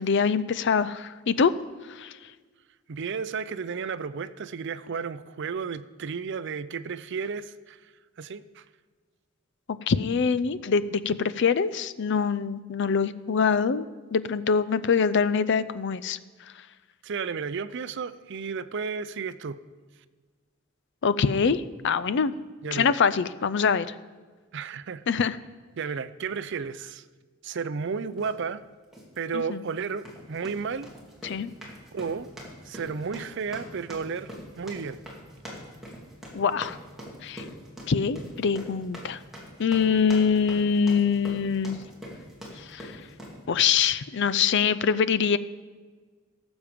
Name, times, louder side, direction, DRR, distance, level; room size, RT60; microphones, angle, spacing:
voice 1, 0.0-1.5 1.8-2.2 9.7-13.9 14.1-16.2 21.0-22.3 22.7-23.9 25.1-25.4 29.3-29.6 31.2-31.5 36.3-36.8 37.2-37.4 37.9-39.2 39.6-41.8 42.5-43.0 43.5-45.4, left 6 dB, 60° left, 15 dB, 0.5 m, -24 dB
voice 2, 2.9-7.8 8.2-8.6 17.0-19.6 22.6-22.9 24.5-25.0 25.8-27.0 27.4-28.6 29.2-30.9 31.9-32.3 32.6-34.3 34.6-35.0, right 5 dB, 60° right, 14 dB, 0.5 m, -33 dB
sound 1, 28.2-28.4 28.9-29.2 29.9-43.4, equal, ahead, 2.6 m, -43 dB
17.0 x 7.2 x 5.1 m, 1.4 s
head